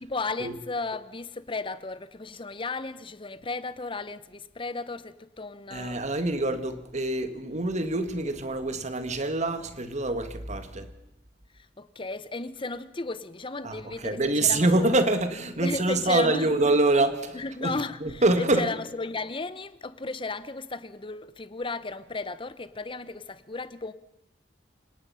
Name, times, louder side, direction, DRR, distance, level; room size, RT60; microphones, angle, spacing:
voice 1, 0.0-6.0 11.5-14.9 15.6-16.5 17.3-23.9, left 3 dB, 30° left, 0.9 m, -34 dB
voice 2, 5.7-10.9 13.6-18.7, right 2 dB, 40° right, 1.7 m, -25 dB
27.5 x 18.0 x 5.7 m
head